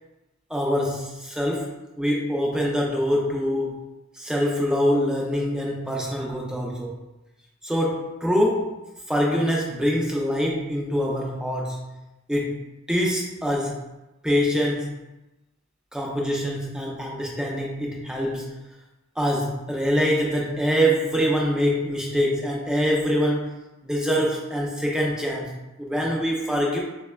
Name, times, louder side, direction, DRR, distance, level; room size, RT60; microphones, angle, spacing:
voice 1, 0.5-3.8 4.1-6.9 7.6-8.8 9.1-12.0 12.3-12.6 12.9-13.8 14.2-15.0 15.9-18.6 19.2-23.6 23.8-26.8, equal, 5° right, -2 dB, 0.3 m, -24 dB
4.7 x 2.1 x 2.2 m, 1.0 s
head